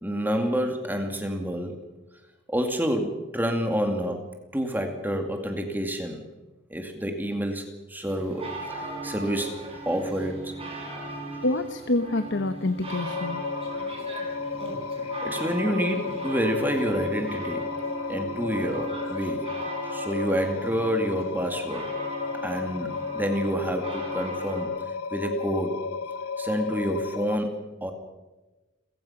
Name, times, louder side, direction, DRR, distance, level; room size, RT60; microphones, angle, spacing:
voice 1, 0.0-1.8 2.5-4.3 4.5-6.2 6.7-7.6 7.9-9.6 9.9-10.5 15.2-17.7 18.1-19.5 19.9-21.9 22.4-24.7 25.1-25.8 26.4-27.9, equal, 10° right, 4 dB, 2.4 m, -28 dB
sound 1, 8.1-24.7, right 2 dB, 25° right, 5.1 m, -38 dB
voice 2, 11.4-13.5, left 2 dB, 55° left, 9 dB, 1.0 m, -27 dB
sound 2, 12.9-27.4, left 5 dB, 85° left, 0.6 m, -33 dB
30.0 x 15.5 x 5.9 m, 1.1 s
head